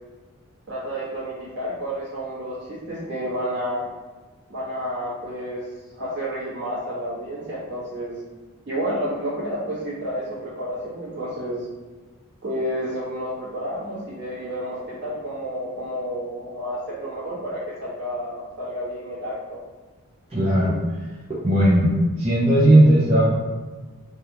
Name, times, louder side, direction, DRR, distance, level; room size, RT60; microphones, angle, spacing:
voice 1, 0.7-3.9 4.5-5.6 5.9-8.2 8.7-11.7 12.4-19.6, equal, 50° right, -9 dB, 1.3 m, -30 dB
voice 2, 20.3-20.7 21.4-23.3, right 1 dB, 25° right, -10 dB, 0.6 m, -17 dB
3.4 x 2.4 x 2.8 m, 1.3 s
head